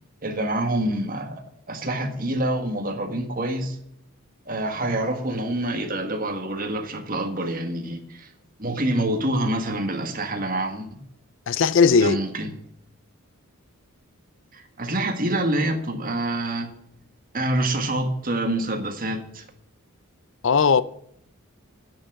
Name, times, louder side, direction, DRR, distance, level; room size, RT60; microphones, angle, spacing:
voice 1, 0.2-3.8 4.5-8.3 8.6-10.9 12.0-12.5 14.5-16.7 17.3-19.4, right 1 dB, 40° right, 1.7 m, -26 dB
voice 2, 11.5-12.2 20.4-20.8, left 5 dB, 55° left, 0.4 m, -17 dB
10.0 x 7.1 x 7.5 m
head